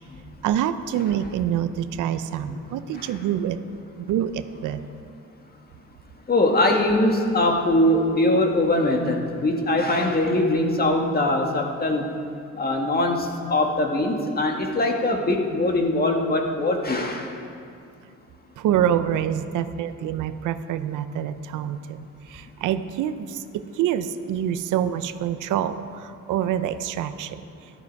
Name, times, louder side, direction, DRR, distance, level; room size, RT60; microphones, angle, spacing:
voice 1, 0.4-3.6 4.1-4.8 18.6-22.1 22.3-23.4 23.8-27.4, right 10 dB, 85° right, 11 dB, 0.7 m, -26 dB
voice 2, 6.3-12.1 12.6-17.3, left 1 dB, 30° left, 2 dB, 1.9 m, -22 dB
13.0 x 12.0 x 4.8 m, 2.4 s
cardioid pair, 90°, 30 cm